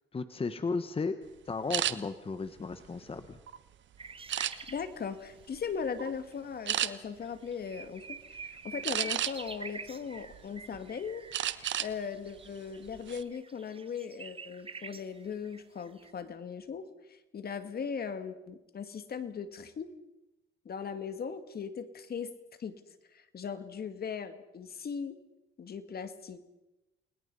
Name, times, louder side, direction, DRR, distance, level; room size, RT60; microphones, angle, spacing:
voice 1, 0.1-1.2 1.4-3.4, left 4 dB, 30° left, 10 dB, 1.3 m, -34 dB
sound 1, 1.7-1.9 2.6-3.6 4.3-4.9 5.4-5.6 6.0-6.2 6.7-6.9 8.8-9.5 10.1-10.8 11.3-11.9 12.3-12.5 12.9-13.2, right 11 dB, 70° right, 1.2 m, -32 dB
sound 2, 4.0-4.9 6.3-6.4 6.9-7.0 7.2-16.1, right 4 dB, 30° right, 1.6 m, -47 dB
voice 2, 4.7-19.9 20.7-22.3 22.6-22.7 23.1-25.2 25.6-26.4, left 6 dB, 50° left, 10 dB, 2.3 m, -39 dB
29.5 x 21.0 x 5.6 m, 0.98 s
cardioid pair, 90°, 20 cm